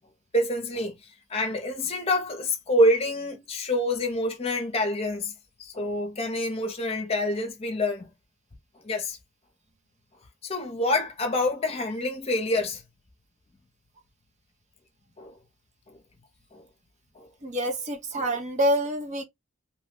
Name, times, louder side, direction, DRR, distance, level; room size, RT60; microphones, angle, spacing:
voice 1, 0.3-0.9 1.3-5.3 5.6-8.1 8.8-9.2 10.4-12.8 15.2-15.4 15.9-16.0 16.5-16.6 17.2-17.3, left 1 dB, 30° left, 0.7 m, -27 dB
voice 2, 17.4-19.2, equal, 35° right, 0.6 m, -26 dB
3.0 x 2.2 x 3.5 m
head